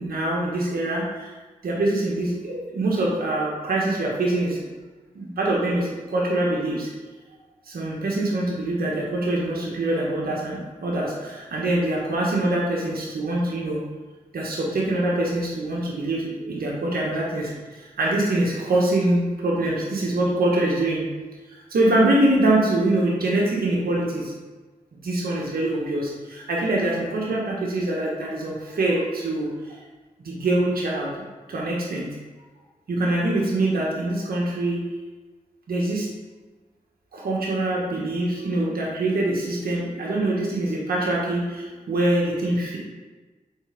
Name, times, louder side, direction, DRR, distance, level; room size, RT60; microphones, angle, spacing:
voice 1, 0.0-1.3 1.6-4.7 5.1-6.9 7.7-13.8 14.3-17.4 17.7-21.1 21.7-24.3 25.0-29.8 30.2-31.1 31.5-32.1 32.9-34.8 35.7-36.1 37.1-42.8, right 1 dB, 80° right, -3 dB, 1.4 m, -24 dB
6.3 x 4.4 x 5.2 m, 1.3 s
cardioid pair, 45°, 15 cm